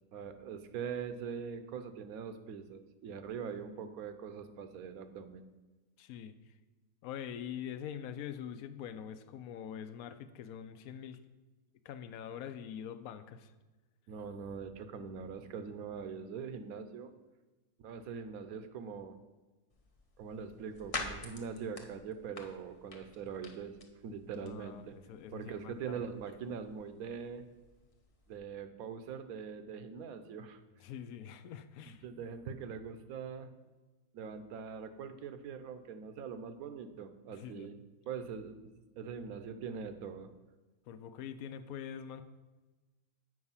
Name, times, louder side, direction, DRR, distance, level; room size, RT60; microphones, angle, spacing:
voice 1, 0.1-5.5 14.1-17.1 17.8-19.2 20.2-23.8 24.0-25.0 25.3-27.4 28.3-30.6 31.9-33.5 34.1-37.7 38.1-40.3, right 6 dB, 85° right, 9 dB, 1.1 m, -42 dB
voice 2, 6.0-6.3 7.0-11.2 11.8-13.5 24.3-26.2 30.8-32.0 37.4-37.7 40.9-42.2, left 9 dB, 85° left, 10 dB, 1.0 m, -44 dB
sound 1, 19.7-28.4, left 3 dB, 35° left, 0.6 m, -48 dB
7.9 x 4.8 x 5.6 m, 1.2 s
omnidirectional pair, 1.5 m